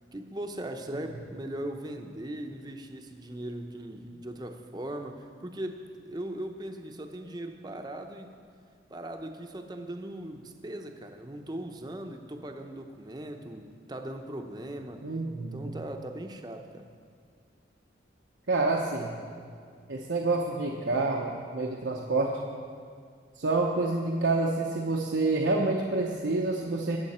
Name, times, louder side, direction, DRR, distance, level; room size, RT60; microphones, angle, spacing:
voice 1, 0.1-8.3 8.9-15.1 15.5-16.9, right 1 dB, 20° right, 5 dB, 0.8 m, -39 dB
voice 2, 15.0-15.7 18.5-19.1 19.9-22.4 23.4-27.0, right 3 dB, 75° right, -1 dB, 0.9 m, -28 dB
21.5 x 7.5 x 4.3 m, 2.1 s
head